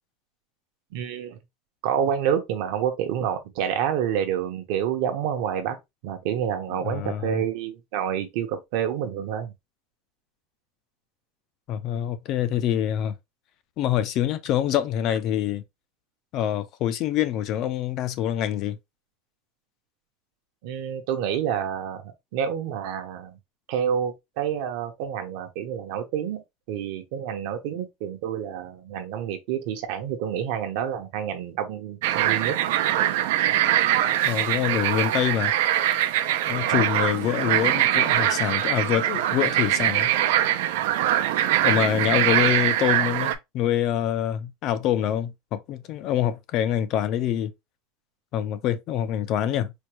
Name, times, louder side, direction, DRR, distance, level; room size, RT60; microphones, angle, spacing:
voice 1, 0.9-1.4 1.8-5.8 6.0-9.5 20.6-22.0 22.3-23.4 23.7-32.6 36.5-36.8, right 9 dB, 55° right, 0.8 m, -28 dB
voice 2, 6.7-7.4 11.7-13.2 13.8-15.6 16.3-18.8 34.2-35.5 36.5-40.1 41.6-47.5 48.3-49.7, left 11 dB, 35° left, 0.4 m, -25 dB
sound 1, 32.0-43.3, right 12 dB, 75° right, 0.4 m, -23 dB
4.4 x 2.2 x 3.0 m
cardioid pair, 180°, 0 cm